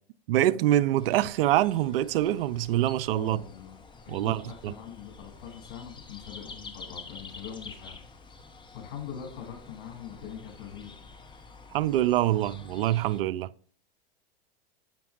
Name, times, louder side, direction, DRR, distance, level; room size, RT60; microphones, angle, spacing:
voice 1, 0.3-3.4 4.1-4.7 11.7-13.5, right 13 dB, 70° right, 0.5 m, -25 dB
sound 1, 1.0-13.2, left 4 dB, 15° left, 0.8 m, -48 dB
voice 2, 3.1-3.8 4.0-8.0 8.7-11.0, left 8 dB, 55° left, 2.8 m, -42 dB
7.2 x 5.9 x 2.4 m
hypercardioid pair, 105°, 30 cm